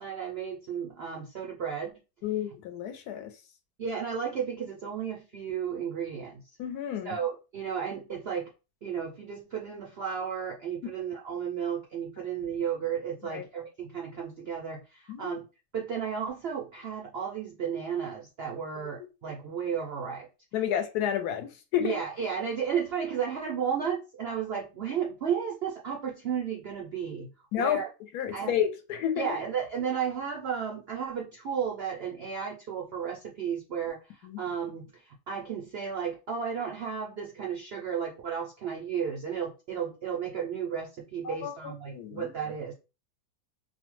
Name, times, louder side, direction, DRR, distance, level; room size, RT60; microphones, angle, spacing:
voice 1, 0.0-1.9 3.8-6.6 7.0-8.5 8.8-15.4 15.7-20.3 21.8-27.3 27.6-27.9 28.3-28.5 29.2-42.7, right 7 dB, 70° right, 0.5 m, -33 dB
voice 2, 2.2-3.3 6.6-7.2 13.3-13.4 15.1-15.4 20.5-21.9 27.5-27.8 28.1-29.3 34.2-34.4 41.2-42.3, left 9 dB, 75° left, 1.1 m, -31 dB
2.7 x 2.1 x 3.0 m
omnidirectional pair, 1.7 m